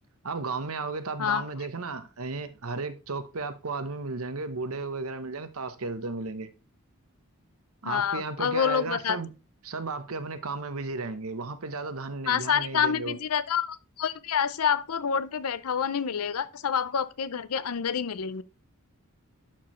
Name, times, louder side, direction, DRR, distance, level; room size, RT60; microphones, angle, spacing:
voice 1, 0.2-6.5 7.8-9.3 9.6-13.2, right 3 dB, 75° right, 0.9 m, -34 dB
voice 2, 7.8-9.2 12.3-18.4, left 7 dB, 80° left, 0.6 m, -27 dB
11.5 x 4.6 x 3.1 m
head